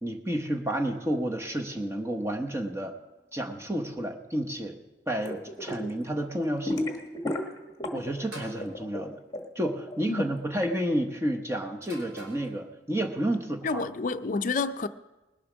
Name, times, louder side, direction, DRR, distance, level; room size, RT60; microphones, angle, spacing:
voice 1, 0.0-2.9 3.3-4.8 5.1-6.9 7.9-9.2 9.5-13.9, right 1 dB, 15° right, 0.9 m, -30 dB
sound 1, 5.2-5.9 6.2-8.2 8.5-10.7, left 1 dB, 20° left, 1.3 m, -33 dB
sound 2, 8.3-8.6 9.8-10.2 11.8-12.5, equal, 85° right, 3.4 m, -44 dB
voice 2, 13.6-14.9, left 4 dB, 45° left, 0.5 m, -29 dB
20.0 x 7.0 x 6.1 m
head